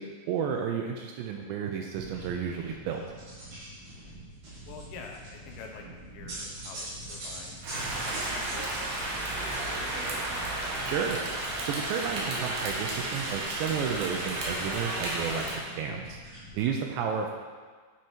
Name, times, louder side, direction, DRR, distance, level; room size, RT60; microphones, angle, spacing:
voice 1, 0.0-3.0 10.9-11.2 11.7-16.2 16.5-17.4, right 7 dB, 85° right, 2 dB, 2.5 m, -32 dB
sound 1, 1.9-16.6, right 1 dB, 50° right, 3.2 m, -44 dB
voice 2, 4.7-10.2 17.2-17.3, left 5 dB, 75° left, 1 dB, 2.9 m, -48 dB
Rain, 7.6-15.6, right 2 dB, 65° right, 2.9 m, -33 dB
9.2 x 4.9 x 4.4 m, 1.5 s
omnidirectional pair, 5.5 m